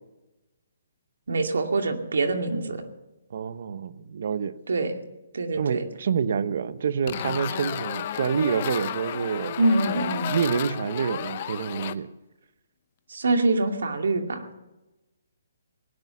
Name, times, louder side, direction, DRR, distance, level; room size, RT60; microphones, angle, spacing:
voice 1, 1.3-2.8 4.7-4.9 5.3-5.8 9.6-10.3 13.1-14.5, right 2 dB, 75° right, 5 dB, 2.5 m, -24 dB
voice 2, 3.3-4.5 5.5-9.6 10.3-12.1, right 6 dB, 60° right, 14 dB, 1.0 m, -27 dB
sound 1, 7.1-11.9, left 10 dB, 40° left, 0.8 m, -32 dB
19.0 x 10.5 x 7.2 m, 1.0 s
hypercardioid pair, 155°, 0 cm